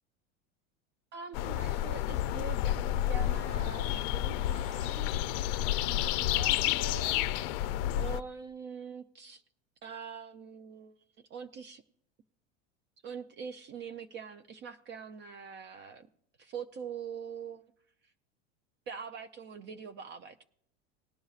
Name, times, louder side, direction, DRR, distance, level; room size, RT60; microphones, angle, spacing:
voice 1, 1.1-5.3 5.7-7.3 8.0-9.4 9.8-10.9 11.3-11.8 13.0-16.1 16.4-17.6 18.9-20.4, right 6 dB, 35° right, 8 dB, 0.5 m, -44 dB
sound 1, 1.3-8.2, left 13 dB, 65° left, 0.5 m, -30 dB
19.0 x 10.5 x 2.4 m, 0.67 s
supercardioid pair, 125°, 31 cm